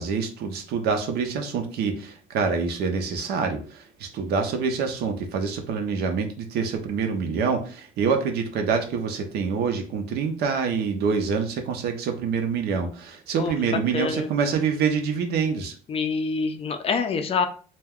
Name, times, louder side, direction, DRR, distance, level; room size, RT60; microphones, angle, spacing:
voice 1, 0.0-15.7, right 5 dB, 70° right, 5 dB, 0.6 m, -26 dB
voice 2, 13.9-14.3 15.9-17.5, left 5 dB, 35° left, 7 dB, 0.4 m, -26 dB
2.3 x 2.2 x 3.4 m, 0.41 s
cardioid pair, 110°, 17 cm